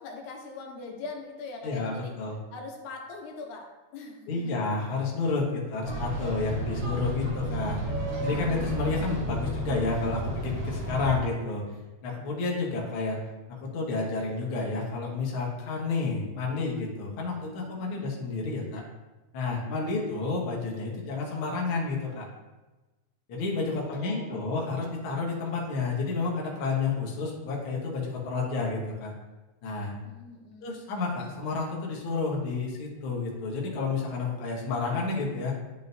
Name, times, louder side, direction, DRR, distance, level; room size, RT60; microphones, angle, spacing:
voice 1, 0.0-2.1 2.5-4.7 5.6-6.0 10.7-10.8 17.8-18.1 23.7-24.7 30.0-30.8, left 3 dB, 80° left, 1 dB, 2.2 m, -42 dB
voice 2, 1.6-2.4 4.3-7.8 8.2-11.6 12.0-13.2 13.5-18.8 19.3-22.2 23.3-29.1 29.6-29.9 30.6-35.5, left 3 dB, 55° left, -2 dB, 1.6 m, -30 dB
sound 1, 5.8-11.1, right 1 dB, 50° right, 1.6 m, -32 dB
10.5 x 3.8 x 2.7 m, 1.1 s
omnidirectional pair, 3.4 m